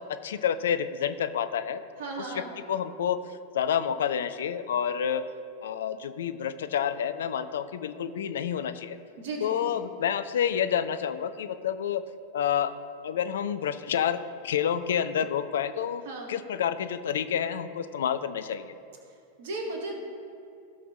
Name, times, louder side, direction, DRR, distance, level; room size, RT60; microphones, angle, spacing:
voice 1, 0.0-1.8 2.3-3.2 3.5-5.2 5.6-9.0 9.4-12.0 12.3-12.8 13.0-16.0 16.3-18.7, left 8 dB, 60° left, 11 dB, 0.5 m, -29 dB
voice 2, 2.0-2.5 9.2-9.8 16.1-16.3 19.4-19.9, right 2 dB, 55° right, 1 dB, 1.9 m, -35 dB
16.0 x 6.0 x 3.0 m, 2.5 s
figure-of-eight pair, 90°, 0 cm